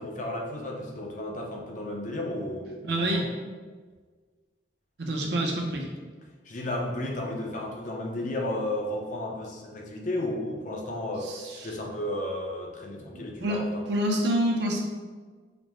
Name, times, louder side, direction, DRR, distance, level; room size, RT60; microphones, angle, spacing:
voice 1, 0.0-3.2 6.5-11.3 11.6-13.6, left 1 dB, 40° left, 0 dB, 0.5 m, -33 dB
voice 2, 2.8-3.3 5.0-5.9 11.2-11.6 13.0-13.6 13.9-14.8, right 1 dB, 60° right, 1 dB, 0.6 m, -27 dB
5.0 x 2.1 x 3.1 m, 1.5 s
head